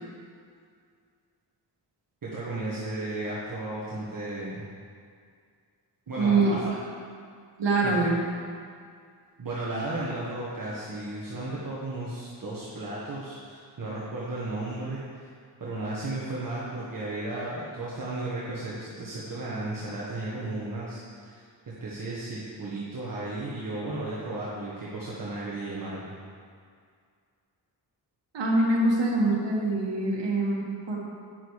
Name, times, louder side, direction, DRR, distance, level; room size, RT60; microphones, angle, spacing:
voice 1, 2.2-4.7 6.1-6.7 7.8-8.1 9.4-15.3 15.6-21.4 21.8-26.1, right 2 dB, 50° right, -7 dB, 1.6 m, -34 dB
voice 2, 6.2-6.5 7.6-8.2 28.3-31.0, right 2 dB, 80° right, -2 dB, 1.9 m, -24 dB
9.2 x 6.2 x 4.8 m, 2.2 s
wide cardioid pair, 90°, 43 cm